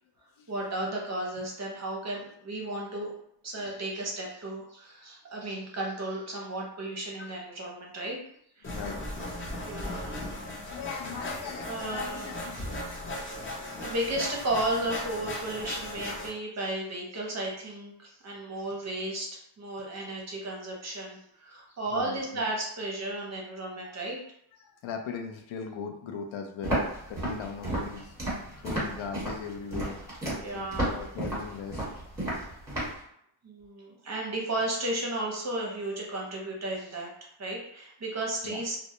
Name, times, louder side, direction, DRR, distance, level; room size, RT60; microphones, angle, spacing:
voice 1, 0.5-3.1 3.4-8.2 8.6-8.7 9.6-10.4 10.7-10.8 11.7-12.4 13.3-24.2 28.5-28.6 29.8-30.0 30.4-31.0 33.4-38.8, right 1 dB, 35° right, -2 dB, 0.6 m, -34 dB
voice 2, 8.6-9.5 9.9-10.2 10.7-12.6 13.1-13.3 21.9-22.4 23.8-23.9 24.6-28.1 28.6-30.0 30.5-31.9 38.4-38.6, left 6 dB, 80° left, 4 dB, 0.5 m, -39 dB
sound 1, 8.6-16.3, left 1 dB, 25° left, 0.5 m, -37 dB
Walk footsteps, 26.6-33.0, right 1 dB, 5° right, 1.0 m, -32 dB
2.1 x 2.1 x 2.7 m, 0.71 s
cardioid pair, 135°, 47 cm